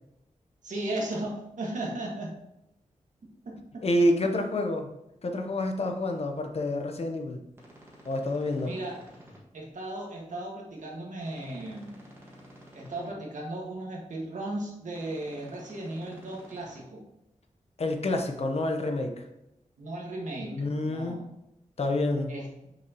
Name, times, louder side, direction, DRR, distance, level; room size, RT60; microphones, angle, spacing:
voice 1, 0.6-2.4 3.5-3.9 4.2-4.3 8.6-9.1 9.5-12.0 12.7-17.0 19.8-21.3 22.3-22.5, right 1 dB, 75° right, -2 dB, 1.8 m, -36 dB
voice 2, 3.8-4.9 5.2-7.4 8.0-8.7 17.8-19.2 20.4-21.2 21.8-22.3, left 1 dB, 50° left, 4 dB, 0.9 m, -28 dB
sound 1, 7.5-9.4 11.2-13.1 14.9-16.8, equal, 20° right, 1.8 m, -51 dB
6.4 x 6.4 x 3.0 m, 0.85 s
wide cardioid pair, 135°, 13 cm